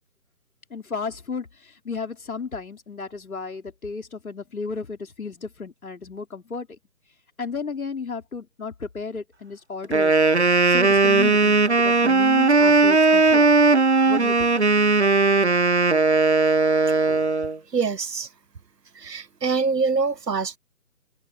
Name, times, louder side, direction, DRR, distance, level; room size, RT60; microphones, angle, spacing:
voice 1, 0.7-6.8 7.4-10.1 10.6-13.5 14.1-14.5, left 5 dB, 60° left, 4.2 m, -33 dB
Wind instrument woodwind instrument, 9.8-17.6, right 3 dB, 45° right, 0.6 m, -18 dB
voice 2, 17.7-18.3 18.9-20.6, right 4 dB, 85° right, 1.6 m, -25 dB
open air
hypercardioid pair, 180°, 48 cm